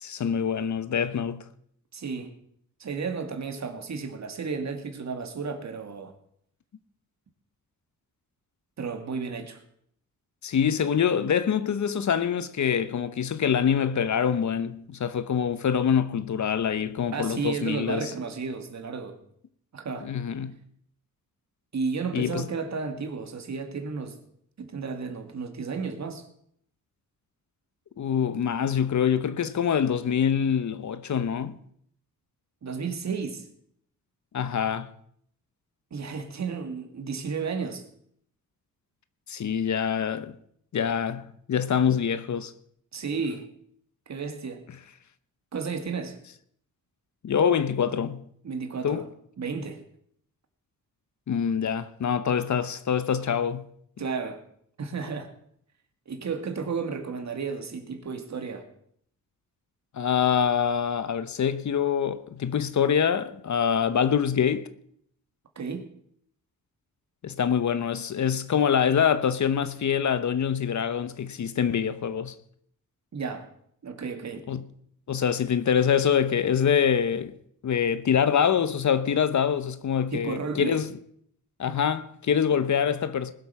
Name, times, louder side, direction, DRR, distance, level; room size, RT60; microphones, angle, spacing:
voice 1, 0.0-1.4 10.4-18.1 20.0-20.5 22.1-22.5 28.0-31.6 34.3-34.9 39.3-40.3 40.7-42.5 47.2-48.2 48.8-49.1 51.3-53.6 59.9-64.7 67.2-72.3 74.5-74.6 75.1-77.3 77.6-80.9 81.6-83.3, left 7 dB, 55° left, 1.0 m, -25 dB
voice 2, 1.9-2.4 2.8-6.1 8.8-9.6 17.1-19.2 19.7-20.1 21.7-24.2 24.6-26.3 32.6-33.5 35.9-37.8 42.9-43.5 44.1-44.7 45.5-46.2 48.4-49.1 49.4-49.8 54.0-54.4 54.8-55.3 56.1-58.7 65.6-65.9 73.1-73.5 73.8-74.5 80.1-80.8, right 5 dB, 50° right, 2.2 m, -33 dB
20.0 x 8.0 x 5.8 m
cardioid pair, 90°, 35 cm